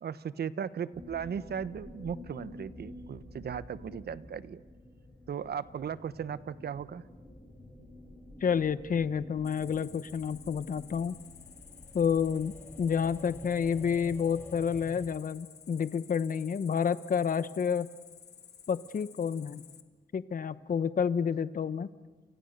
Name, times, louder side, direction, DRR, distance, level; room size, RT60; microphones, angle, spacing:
voice 1, 0.0-4.6 5.3-7.0, right 7 dB, 65° right, 16 dB, 1.1 m, -37 dB
sound 1, 0.9-15.0, left 1 dB, 10° left, 7.1 m, -50 dB
voice 2, 8.4-11.1 11.9-12.5 12.8-17.9 18.7-19.6 20.1-21.9, left 7 dB, 50° left, 15 dB, 1.1 m, -29 dB
Cricket, 9.4-19.8, left 8 dB, 70° left, 2.0 m, -53 dB
29.5 x 29.0 x 6.7 m, 1.4 s
wide cardioid pair, 140°, 18 cm